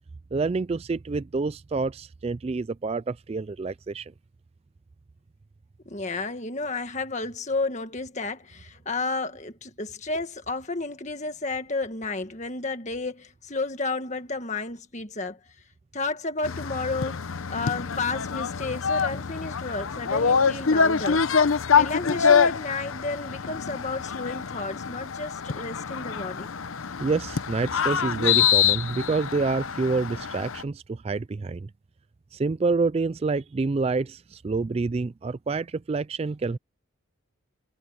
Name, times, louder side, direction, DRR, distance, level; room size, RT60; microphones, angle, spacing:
voice 1, 0.3-4.1 27.0-31.7 32.3-36.6, right 3 dB, 30° right, 0.3 m, -27 dB
voice 2, 5.9-15.4 15.9-17.2 17.5-21.2 21.8-26.5, left 3 dB, 35° left, 1.7 m, -32 dB
sound 1, 16.4-30.6, left 6 dB, 75° left, 0.7 m, -25 dB
head